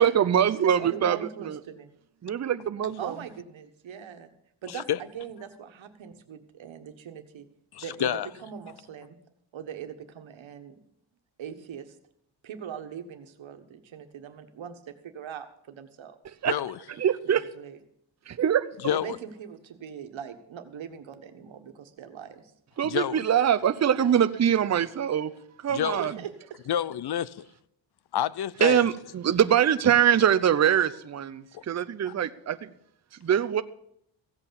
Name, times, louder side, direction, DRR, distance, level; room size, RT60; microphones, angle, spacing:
voice 1, 0.0-1.6 2.2-3.2 16.4-16.5 17.0-17.4 18.3-18.7 22.8-25.3 25.6-26.1 28.6-32.7 33.2-33.6, right 9 dB, 35° right, 0.6 m, -23 dB
voice 2, 0.8-1.9 3.0-4.3 4.6-7.5 7.8-9.2 9.5-10.8 11.4-12.0 12.4-16.4 17.2-17.8 18.9-22.5 25.9-26.3, right 8 dB, 80° right, 1.5 m, -41 dB
voice 3, 7.7-8.3 16.5-16.8 18.8-19.2 22.8-23.3 25.7-26.1 26.7-27.5 28.1-28.9 31.5-31.6 32.1-32.2, left 10 dB, 55° left, 0.6 m, -29 dB
15.5 x 8.2 x 7.0 m
wide cardioid pair, 125°, 46 cm